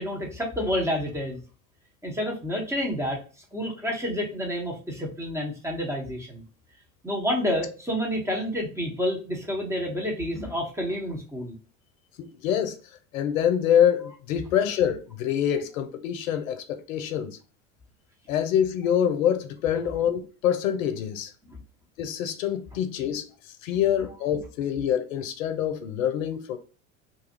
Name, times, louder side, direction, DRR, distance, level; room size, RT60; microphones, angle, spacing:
voice 1, 0.0-1.4 2.0-3.2 3.5-6.4 7.0-11.6 21.5-21.6, equal, 5° right, 1.1 m, -29 dB
voice 2, 12.2-12.8 13.1-17.4 18.3-21.3 22.0-23.3 23.6-26.6, left 9 dB, 75° left, 0.7 m, -25 dB
2.6 x 2.4 x 2.8 m
hypercardioid pair, 80°, 40 cm